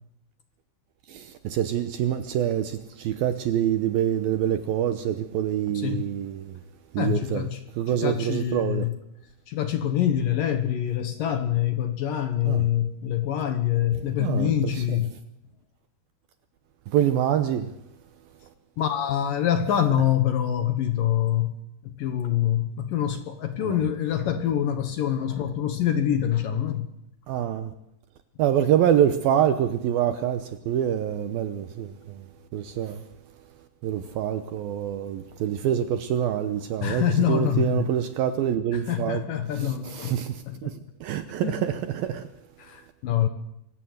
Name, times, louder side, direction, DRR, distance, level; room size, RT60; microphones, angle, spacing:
voice 1, 1.1-6.6 6.9-7.5 7.8-8.9 12.5-12.7 14.2-15.0 16.9-17.7 23.6-23.8 27.3-27.7 28.4-31.9 32.5-33.0 33.8-39.2 39.6-42.2, right 10 dB, 75° right, 2.3 m, -26 dB
voice 2, 5.7-6.1 7.0-7.6 8.0-9.0 9.5-15.1 18.8-21.5 21.8-26.9 36.8-37.9 38.7-40.2 40.5-40.8 41.4-41.6 42.6-43.3, left 10 dB, 65° left, 2.5 m, -25 dB
25.0 x 15.5 x 8.0 m
omnidirectional pair, 5.1 m